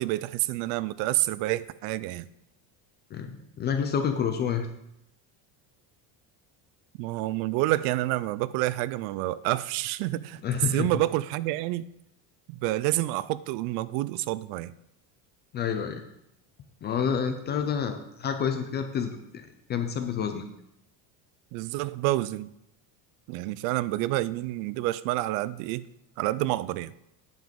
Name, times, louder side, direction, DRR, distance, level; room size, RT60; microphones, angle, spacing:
voice 1, 0.0-2.3 7.0-10.4 10.7-11.8 12.5-14.7 21.5-22.5 23.3-25.9 26.2-26.9, right 17 dB, 70° right, 18 dB, 0.5 m, -28 dB
voice 2, 3.1-4.7 10.4-10.9 15.5-16.0 16.8-20.4, left 7 dB, 25° left, 7 dB, 0.3 m, -29 dB
9.4 x 7.4 x 5.2 m, 0.81 s
cardioid pair, 175°, 46 cm